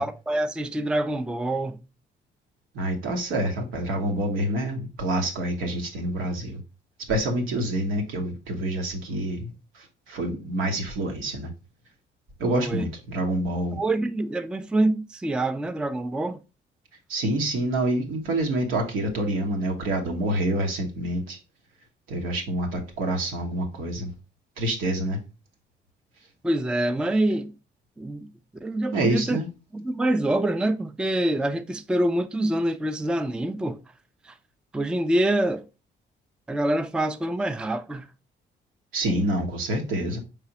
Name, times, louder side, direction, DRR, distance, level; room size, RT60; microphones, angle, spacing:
voice 1, 0.0-1.8 12.5-12.9 13.7-16.4 26.4-27.5 28.0-28.3 28.6-29.4 29.7-33.8 34.2-34.3 34.7-35.7 36.5-38.1, right 1 dB, 5° right, 0.3 m, -26 dB
voice 2, 2.7-6.6 7.1-11.5 12.4-13.8 17.1-21.4 22.1-24.1 24.6-25.2 28.9-29.5 38.9-40.2, right 1 dB, 85° right, 1.1 m, -27 dB
4.8 x 3.3 x 2.8 m
cardioid pair, 90°, 20 cm